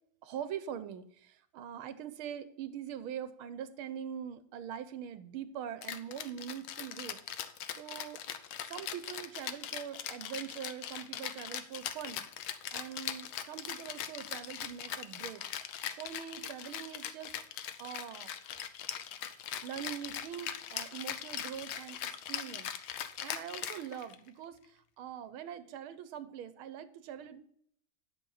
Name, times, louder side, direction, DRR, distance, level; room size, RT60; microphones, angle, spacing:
voice 1, 0.2-7.2 7.8-8.2 8.6-12.2 12.7-15.4 16.0-17.3 17.8-18.3 19.6-22.7 23.2-27.4, right 9 dB, 75° right, 12 dB, 1.7 m, -43 dB
Rattle (instrument), 5.8-24.3, left 10 dB, 75° left, 1.6 m, -41 dB
10.0 x 6.7 x 5.7 m, 0.65 s
omnidirectional pair, 2.4 m